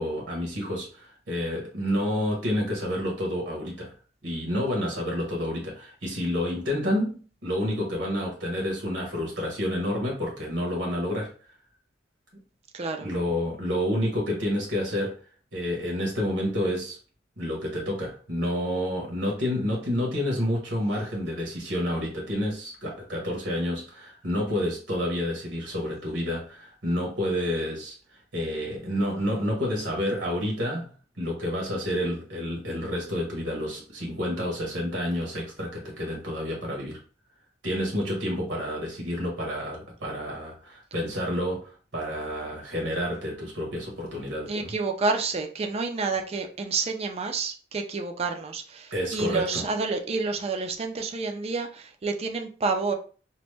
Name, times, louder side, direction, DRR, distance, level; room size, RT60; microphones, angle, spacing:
voice 1, 0.0-3.9 4.2-11.3 13.0-15.2 15.5-17.0 17.4-27.9 28.3-37.0 37.6-44.7 48.9-49.6, equal, 85° right, 1.2 m, -29 dB
voice 2, 12.7-13.1 44.5-52.9, right 4 dB, 35° right, 0.4 m, -29 dB
3.0 x 2.1 x 3.2 m
head